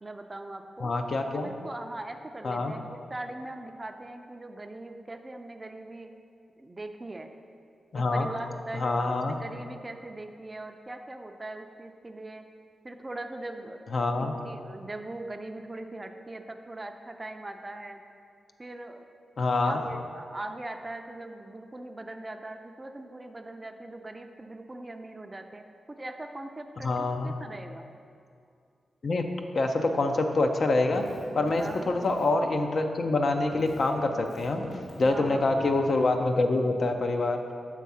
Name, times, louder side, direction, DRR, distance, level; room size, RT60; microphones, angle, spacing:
voice 1, 0.0-0.9 1.2-6.1 6.6-7.3 7.9-12.4 12.8-13.8 14.2-18.0 18.6-19.0 19.6-25.6 25.9-27.9 31.6-31.9 35.0-35.4, right 2 dB, 25° right, 6 dB, 0.4 m, -40 dB
voice 2, 0.8-1.5 2.4-2.7 7.9-8.3 8.7-9.4 13.9-14.3 19.4-19.8 26.8-27.3 29.0-29.3 29.5-31.0 31.3-34.6 35.0-37.4, left 2 dB, 60° left, 5 dB, 0.5 m, -26 dB
Keyboard (musical), 30.9-33.2 33.5-36.3, left 1 dB, 80° left, 1.1 m, -44 dB
7.4 x 3.5 x 5.5 m, 2.4 s
cardioid pair, 65°, 0 cm